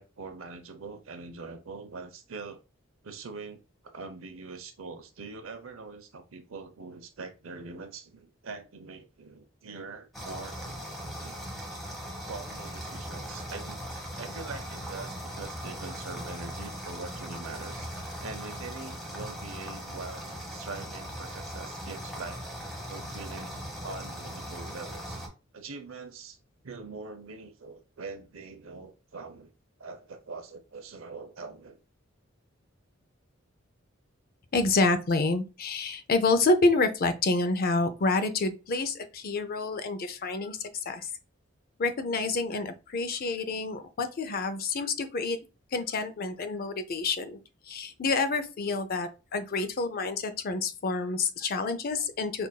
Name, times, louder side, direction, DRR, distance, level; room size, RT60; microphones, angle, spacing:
voice 1, 0.0-2.6 3.0-11.4 12.3-13.8 14.1-17.9 18.2-22.4 22.9-23.6 23.8-25.2 25.5-26.4 26.6-29.5 29.8-31.8, right 4 dB, 85° right, 0.7 m, -43 dB
sound 1, 10.1-25.3, equal, ahead, 1.0 m, -39 dB
voice 2, 34.5-41.1 41.8-45.4 45.7-47.4 47.7-52.5, left 3 dB, 50° left, 0.5 m, -28 dB
5.6 x 2.5 x 2.2 m
head